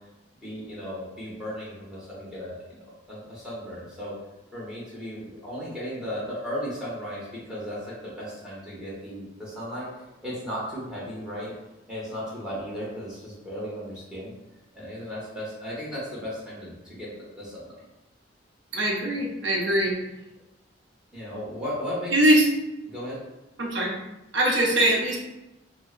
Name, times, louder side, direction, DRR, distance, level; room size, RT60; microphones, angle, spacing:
voice 1, 0.4-4.1 4.5-11.5 11.9-14.3 14.7-17.1 17.3-17.8 21.1-22.1 22.9-23.2, equal, 5° right, -8 dB, 0.9 m, -35 dB
voice 2, 18.7-19.9 22.1-22.5 23.6-23.9 24.3-25.2, right 1 dB, 75° right, -1 dB, 0.7 m, -21 dB
4.5 x 2.0 x 2.4 m, 0.97 s
head